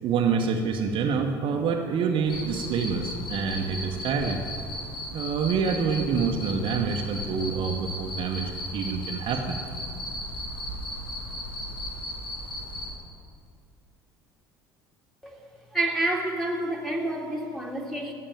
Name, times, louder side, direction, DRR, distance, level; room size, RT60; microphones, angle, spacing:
voice 1, 0.0-4.4 5.1-9.6, right 5 dB, 45° right, 3 dB, 1.1 m, -27 dB
Cricket, 2.3-12.9, left 1 dB, 80° left, 2.2 m, -36 dB
voice 2, 15.7-18.1, right 2 dB, ahead, -1 dB, 2.3 m, -28 dB
15.5 x 6.6 x 9.1 m, 2.2 s
figure-of-eight pair, 60°, 12 cm